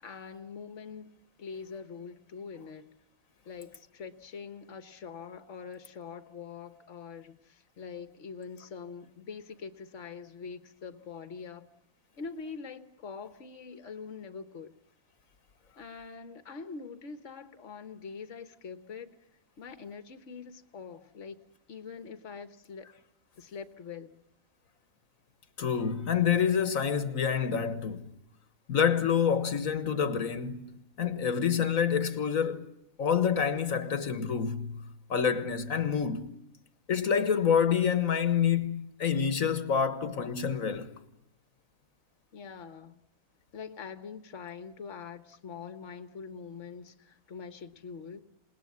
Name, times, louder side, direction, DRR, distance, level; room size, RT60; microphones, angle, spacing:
voice 1, 0.0-2.9 3.4-11.7 12.2-14.7 15.8-19.1 19.6-21.4 21.7-22.9 23.4-24.1 42.3-43.0 43.5-48.2, left 5 dB, 60° left, 1.7 m, -44 dB
voice 2, 25.6-28.0 28.7-32.6 33.0-34.7 35.1-36.3 36.9-40.9, left 7 dB, 80° left, 1.8 m, -27 dB
28.0 x 19.5 x 9.5 m
omnidirectional pair, 1.4 m